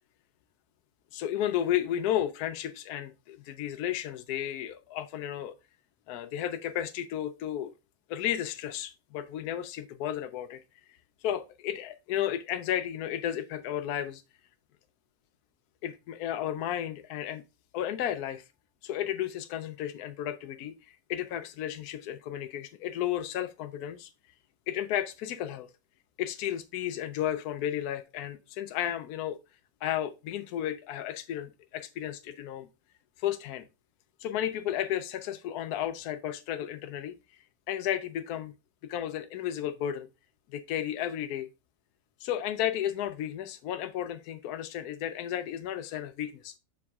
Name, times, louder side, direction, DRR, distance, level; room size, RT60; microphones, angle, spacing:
voice 1, 1.1-5.5 6.1-7.7 8.1-10.6 11.2-14.2 15.8-17.4 17.7-18.4 18.8-24.1 24.7-25.7 26.2-29.4 29.8-32.7 33.2-33.7 34.2-37.2 37.7-38.5 38.8-40.1 40.5-41.5 42.2-46.5, left 11 dB, 75° left, 1.0 m, -33 dB
7.2 x 6.2 x 2.3 m
omnidirectional pair, 1.7 m